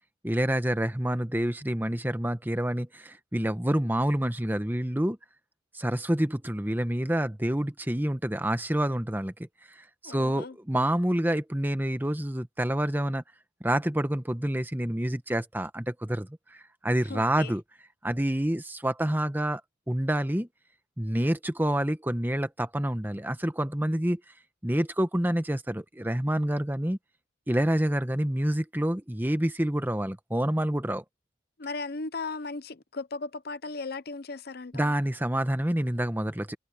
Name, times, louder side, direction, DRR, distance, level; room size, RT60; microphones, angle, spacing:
voice 1, 0.2-5.2 5.7-9.3 9.8-13.2 13.6-17.6 18.0-19.6 19.9-20.5 21.0-24.2 24.6-27.0 27.5-31.0 34.7-36.6, right 1 dB, 10° right, 1.1 m, -28 dB
voice 2, 10.0-10.6 17.1-17.5 31.6-34.9, left 3 dB, 55° left, 0.8 m, -37 dB
head